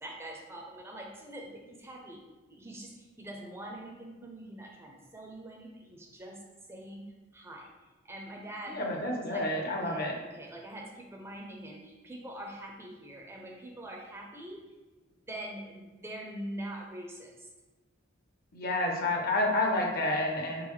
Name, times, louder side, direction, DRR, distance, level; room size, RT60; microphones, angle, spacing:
voice 1, 0.0-2.2 2.5-6.4 6.7-7.0 7.3-7.7 8.0-14.6 15.3-17.5, right 1 dB, 15° right, -1 dB, 0.4 m, -44 dB
voice 2, 8.7-10.2 18.5-20.6, left 2 dB, 50° left, 1 dB, 0.7 m, -29 dB
3.8 x 3.5 x 3.1 m, 1.2 s
head